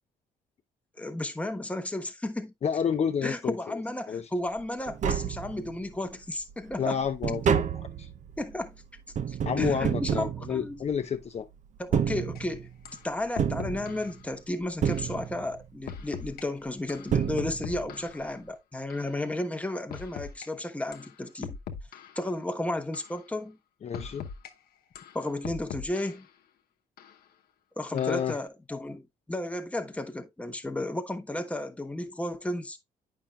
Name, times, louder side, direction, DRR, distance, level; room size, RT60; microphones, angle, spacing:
voice 1, 1.0-2.5 3.2-7.0 8.4-8.8 9.3-10.8 11.8-12.7 13.0-21.6 22.2-23.6 25.1-26.3 27.8-32.8, left 1 dB, 10° left, 1.2 m, -33 dB
voice 2, 2.6-3.8 4.1-4.3 6.8-7.7 8.0-8.1 9.4-11.5 23.8-24.3 27.9-28.4, left 7 dB, 40° left, 0.6 m, -30 dB
Tap, 4.6-4.7 4.9-6.0 6.4-11.2 11.8-12.8 13.4-14.4 14.8-15.7 16.7-16.8 17.1-17.9 18.2-18.3, right 8 dB, 50° right, 0.5 m, -30 dB
sound 1, 12.4-12.5 12.9-13.0 13.4-14.1 14.9-15.1 15.9-16.4 16.9-18.3 18.9-19.1 19.9-20.5 20.9-21.1 21.4-22.3 22.9-23.2 23.9-24.5 25.0-26.3 27.0-27.1 28.0-28.4, left 7 dB, 70° left, 0.9 m, -41 dB
8.7 x 5.7 x 2.4 m
cardioid pair, 80°, 16 cm